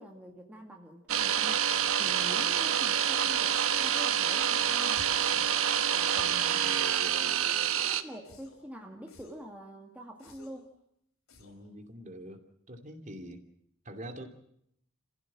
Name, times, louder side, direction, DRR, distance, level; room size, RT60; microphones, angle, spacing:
voice 1, 0.0-1.7 2.0-5.5 5.9-6.9 7.7-10.7, equal, 5° right, 1 dB, 2.0 m, -46 dB
sound 1, 1.1-8.0, right 9 dB, 75° right, 1.3 m, -27 dB
sound 2, 4.9-5.3 6.1-6.5 7.0-7.5 8.2-8.7 9.1-9.5 10.2-10.7 11.3-11.7, left 1 dB, 85° left, 4.7 m, -54 dB
voice 2, 11.4-12.4 12.7-13.4 13.8-14.3, right 1 dB, 35° right, 4 dB, 2.6 m, -44 dB
29.5 x 15.5 x 7.4 m, 0.73 s
head